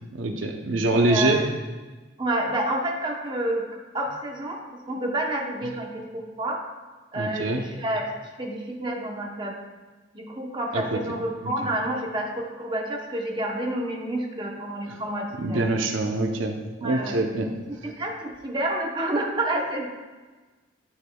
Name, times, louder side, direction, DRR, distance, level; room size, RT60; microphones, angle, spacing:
voice 1, 0.1-1.4 7.1-7.6 10.7-11.0 11.4-11.5 14.9-15.0 15.4-17.5, right 2 dB, 85° right, 3 dB, 0.7 m, -25 dB
voice 2, 0.9-1.4 2.2-3.6 3.9-6.6 7.1-9.6 10.1-15.6 16.8-17.2 17.8-19.8, right 1 dB, 25° right, 0 dB, 0.8 m, -29 dB
11.5 x 6.1 x 2.3 m, 1.3 s
head